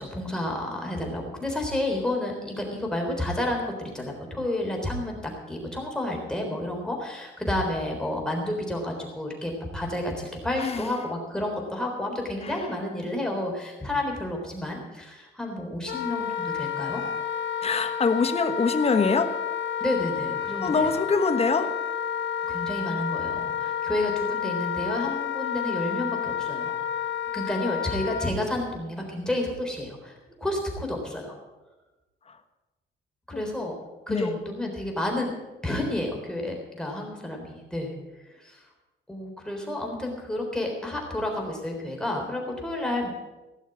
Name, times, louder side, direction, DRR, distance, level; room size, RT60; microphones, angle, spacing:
voice 1, 0.0-17.0 19.8-21.0 22.5-26.8 27.3-31.3 33.3-33.8 34.1-35.4 35.6-37.9 38.3-38.6 39.1-43.1, left 1 dB, 5° left, 0 dB, 3.7 m, -30 dB
voice 2, 10.6-10.9 12.4-12.5 17.6-19.3 20.6-21.7 33.3-33.4 34.1-34.4, left 4 dB, 30° left, 8 dB, 1.3 m, -24 dB
Wind instrument woodwind instrument, 15.9-28.3, left 8 dB, 65° left, 1.2 m, -30 dB
16.5 x 6.5 x 8.9 m, 1.1 s
cardioid pair, 110°, 20 cm